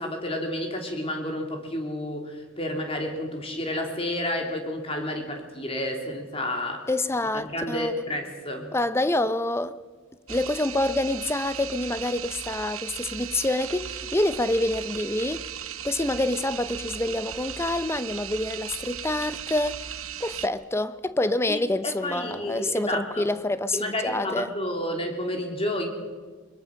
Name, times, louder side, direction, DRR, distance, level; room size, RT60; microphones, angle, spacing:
voice 1, 0.0-6.9 7.3-8.7 21.5-23.3 23.7-25.9, left 1 dB, 25° left, 3.1 m, -30 dB
voice 2, 6.9-7.9 8.7-9.8 10.3-15.5 15.8-19.9 20.2-24.5, left 1 dB, 10° left, 0.6 m, -27 dB
sound 1, 10.3-20.5, right 9 dB, 90° right, 1.1 m, -37 dB
22.0 x 22.0 x 6.4 m
head